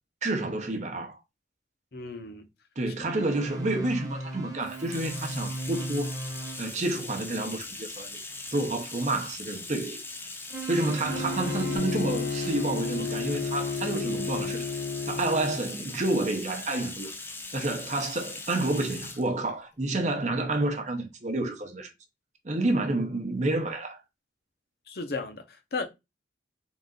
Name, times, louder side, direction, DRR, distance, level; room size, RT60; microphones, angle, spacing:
voice 1, 0.2-1.2 2.8-6.1 6.6-8.2 8.5-10.0 10.7-14.7 15.1-17.1 17.5-21.9 22.4-24.0, right 2 dB, 40° right, 0.8 m, -29 dB
voice 2, 1.9-2.5 3.1-3.2 24.9-25.9, left 3 dB, 55° left, 0.8 m, -35 dB
sound 1, 3.2-6.7 10.5-11.8, right 2 dB, 20° right, 1.1 m, -36 dB
Bathtub (filling or washing), 4.6-19.3, left 3 dB, 10° left, 0.5 m, -40 dB
Bowed string instrument, 11.1-15.6, left 4 dB, 75° left, 1.1 m, -32 dB
3.9 x 2.5 x 3.8 m
head